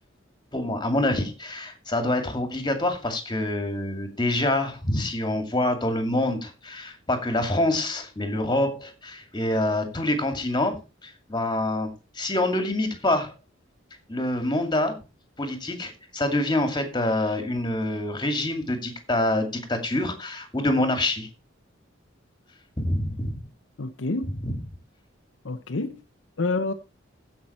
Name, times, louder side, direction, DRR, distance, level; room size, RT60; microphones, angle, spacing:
voice 1, 0.5-13.3 14.1-15.0 15.4-21.3 22.8-23.4 24.4-24.5, left 1 dB, 25° left, 2.3 m, -26 dB
voice 2, 23.8-24.4 25.4-26.0 26.4-26.7, left 3 dB, 75° left, 0.8 m, -28 dB
15.0 x 5.9 x 4.3 m
head